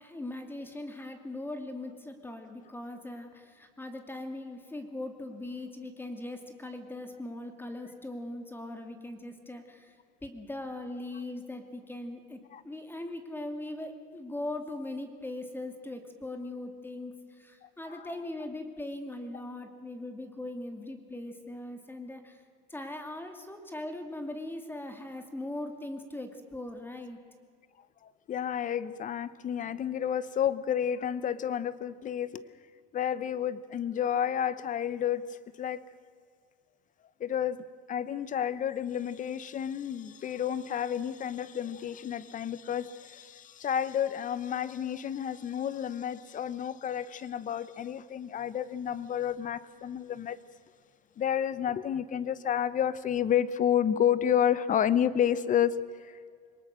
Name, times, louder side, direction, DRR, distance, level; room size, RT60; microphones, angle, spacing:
voice 1, 0.0-10.0 10.2-22.4 22.7-27.2, left 1 dB, 10° left, 6 dB, 2.4 m, -40 dB
voice 2, 17.6-18.1 28.0-32.4 32.9-35.8 37.2-50.4 51.2-55.7 56.0-56.1, left 9 dB, 40° left, 16 dB, 1.0 m, -30 dB
23.0 x 19.5 x 6.4 m, 2.1 s
supercardioid pair, 95°, 21 cm